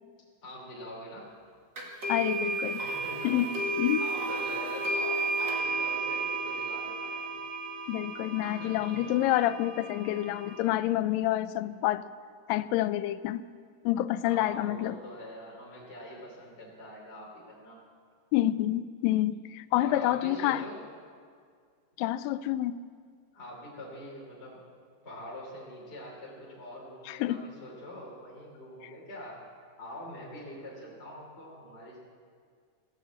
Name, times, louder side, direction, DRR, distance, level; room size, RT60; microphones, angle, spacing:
voice 1, 0.4-1.3 2.8-7.4 8.4-9.1 14.2-17.8 19.8-20.8 23.3-24.6 25.0-29.4 29.8-32.0, left 1 dB, 20° left, -5 dB, 3.1 m, -44 dB
sound 1, 1.8-10.6, right 2 dB, 35° right, 2.3 m, -33 dB
voice 2, 2.1-2.8 3.2-4.0 7.9-12.1 12.5-13.4 13.9-15.0 18.3-20.6 22.0-22.8 27.1-27.4, left 14 dB, 85° left, 15 dB, 2.2 m, -28 dB
16.5 x 9.1 x 8.1 m, 2.1 s
omnidirectional pair, 4.0 m